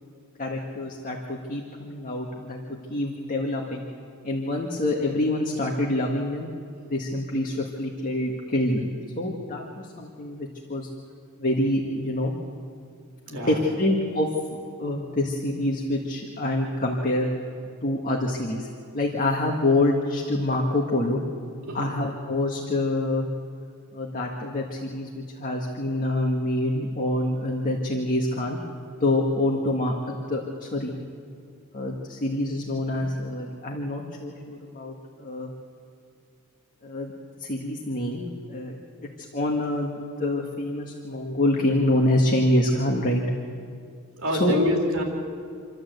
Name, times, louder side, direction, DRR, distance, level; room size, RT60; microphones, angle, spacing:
voice 1, 0.4-2.6 2.9-3.9 4.2-6.5 6.9-10.9 11.4-12.3 13.3-14.3 14.8-17.3 17.8-18.7 18.9-21.2 21.7-23.3 23.9-28.6 29.0-30.9 31.7-35.5 36.8-43.2 44.3-44.6, left 1 dB, 40° left, 0 dB, 1.7 m, -26 dB
voice 2, 13.3-13.6 21.6-21.9 44.2-45.0, equal, 65° right, 0 dB, 3.7 m, -27 dB
28.0 x 12.0 x 8.0 m, 2.3 s
head